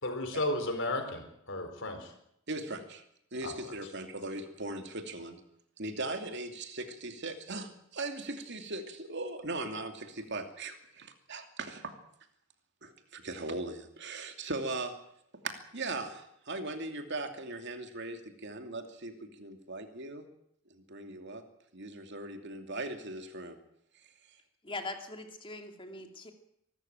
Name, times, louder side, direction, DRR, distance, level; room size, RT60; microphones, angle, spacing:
voice 1, 0.0-2.1 3.4-3.5, left 1 dB, 60° left, 6 dB, 4.6 m, -33 dB
voice 2, 2.5-3.0 3.3-5.4 5.8-11.9 12.8-15.0 15.4-20.2 20.7-21.4 21.7-23.6, right 2 dB, 55° right, 6 dB, 2.7 m, -39 dB
voice 3, 24.6-26.3, left 2 dB, 25° left, 5 dB, 2.7 m, -41 dB
24.0 x 13.5 x 8.9 m, 0.74 s
head